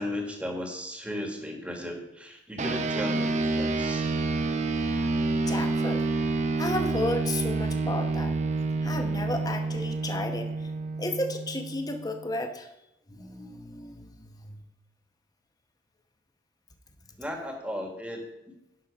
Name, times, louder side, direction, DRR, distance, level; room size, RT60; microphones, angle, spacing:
voice 1, 0.0-4.1 17.2-18.2, left 1 dB, 5° right, 2 dB, 1.6 m, -35 dB
sound 1, 2.6-12.3, right 3 dB, 40° right, 0.7 m, -28 dB
voice 2, 5.4-6.0 6.6-8.4 8.8-10.7 11.0-12.7 13.1-14.6, left 2 dB, 20° left, 6 dB, 1.0 m, -33 dB
10.5 x 5.8 x 5.0 m, 0.91 s
head